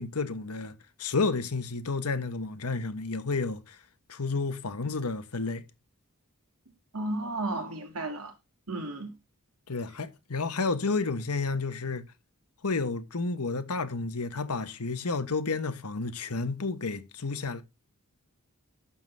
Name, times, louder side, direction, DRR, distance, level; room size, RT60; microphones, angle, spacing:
voice 1, 0.0-3.8 4.1-5.6 9.7-12.0 12.6-17.6, left 3 dB, 80° left, 1.2 m, -31 dB
voice 2, 6.9-8.3 8.7-9.1, right 2 dB, 75° right, 2.9 m, -33 dB
11.5 x 3.9 x 7.7 m
head